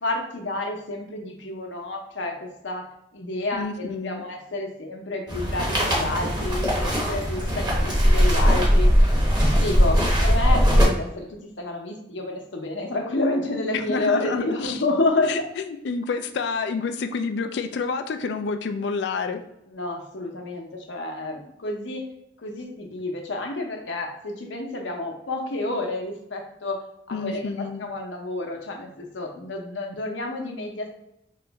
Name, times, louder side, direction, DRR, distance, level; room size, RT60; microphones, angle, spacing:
voice 1, 0.0-2.8 3.1-8.9 9.5-11.3 11.6-15.4 19.7-22.0 22.4-26.8 27.1-27.5 27.8-30.9, left 2 dB, 80° left, 1 dB, 0.8 m, -29 dB
voice 2, 3.5-4.2 13.7-14.8 15.3-19.4 27.1-27.9, left 4 dB, 65° left, 7 dB, 0.3 m, -29 dB
sound 1, 5.3-10.9, equal, 25° right, 1.0 m, -19 dB
3.1 x 2.9 x 3.5 m, 0.82 s
head